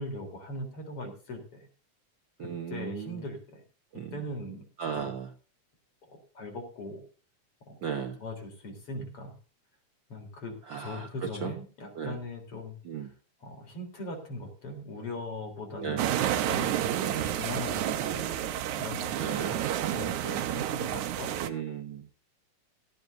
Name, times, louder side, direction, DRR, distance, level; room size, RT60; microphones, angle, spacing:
voice 1, 0.0-1.7 2.7-3.6 4.1-4.6 4.9-5.1 6.1-7.0 7.7-7.8 8.2-9.3 10.1-13.1 13.4-18.2 18.8-19.6 19.9-21.4, left 1 dB, 50° left, 4 dB, 4.7 m, -40 dB
voice 2, 2.4-3.2 3.9-4.1 4.8-5.3 7.8-8.2 10.7-11.1 11.4-11.5 12.0-12.2 12.8-13.1 15.8-16.1 17.0-17.3 18.1-18.5 19.2-19.5 21.4-22.1, right 7 dB, 60° right, 6 dB, 1.3 m, -36 dB
sound 1, 16.0-21.5, right 11 dB, 80° right, 2.3 m, -30 dB
16.5 x 13.5 x 2.7 m, 0.38 s
omnidirectional pair, 3.4 m